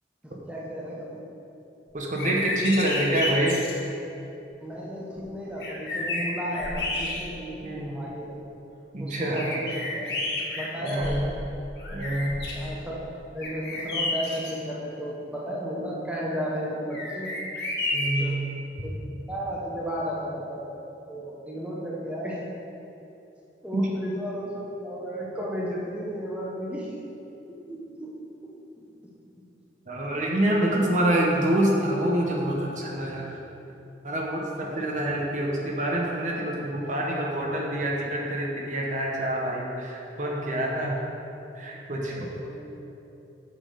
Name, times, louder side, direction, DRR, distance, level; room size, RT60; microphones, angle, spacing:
voice 1, 0.2-1.3 4.6-8.5 9.0-10.1 10.5-11.4 12.5-12.9 13.3-17.3 18.2-18.5 18.8-19.0 19.3-20.7 21.1-22.4 23.6-27.0 27.5-29.5 30.4-30.8 34.7-35.0 42.4-42.7, equal, 5° right, -5 dB, 0.9 m, -34 dB
voice 2, 1.9-3.6 7.6-8.0 8.9-9.4 10.8-11.2 11.9-12.4 17.9-18.4 23.7-23.9 29.9-33.3 34.0-41.0 41.5-42.3, right 1 dB, 45° right, -2 dB, 1.2 m, -26 dB
sound 1, 2.0-3.8 5.2-5.3 5.6-7.5 8.1-8.2 9.3-11.4 11.8-12.6 13.4-14.5 16.9-18.3, left 2 dB, 65° left, 1.8 m, -31 dB
7.1 x 6.7 x 5.2 m, 2.9 s
head